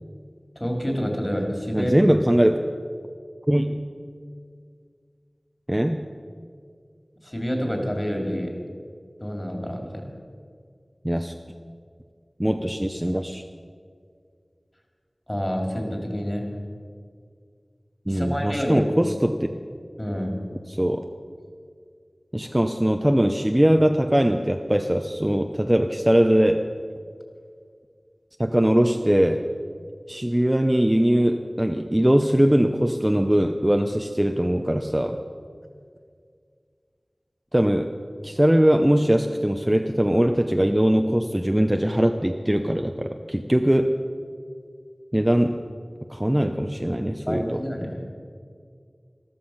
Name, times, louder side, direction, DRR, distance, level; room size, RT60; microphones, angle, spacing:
voice 1, 0.6-2.0 7.2-8.5 9.2-10.1 15.3-16.5 18.1-18.9 20.0-20.4 47.3-48.0, equal, 25° left, 2 dB, 2.9 m, -28 dB
voice 2, 1.7-2.6 3.5-3.8 5.7-6.0 11.0-11.3 12.4-13.4 18.1-19.5 20.7-21.0 22.3-26.7 28.4-29.4 30.1-35.2 37.5-37.9 38.2-43.9 45.1-45.6 46.1-47.6, equal, 15° right, 5 dB, 0.6 m, -21 dB
13.5 x 13.0 x 5.8 m, 2.1 s
wide cardioid pair, 50°, 0 cm